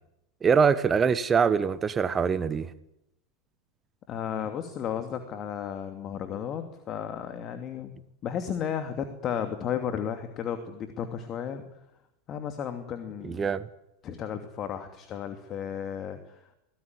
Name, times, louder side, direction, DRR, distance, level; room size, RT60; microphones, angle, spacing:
voice 1, 0.4-2.7 13.2-13.7, right 6 dB, 25° right, 1.2 m, -23 dB
voice 2, 4.1-11.6 12.3-13.4 14.0-16.4, left 8 dB, 40° left, 2.6 m, -34 dB
24.0 x 18.5 x 9.8 m
figure-of-eight pair, 85°, 0 cm